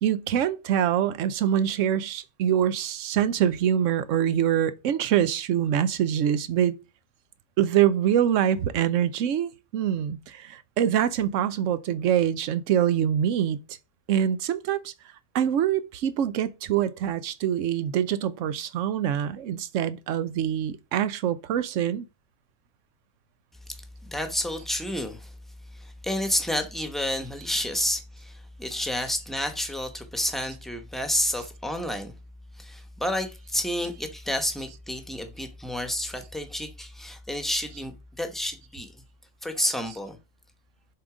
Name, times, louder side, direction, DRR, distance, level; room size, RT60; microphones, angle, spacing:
voice 1, 0.0-6.7 7.6-13.6 14.1-14.9 15.3-22.1, right 10 dB, 85° right, 1.0 m, -24 dB
voice 2, 24.0-25.3 25.7-32.1 32.6-38.9 39.4-40.2, left 1 dB, ahead, 0.8 m, -30 dB
7.1 x 3.9 x 4.9 m
omnidirectional pair, 1.3 m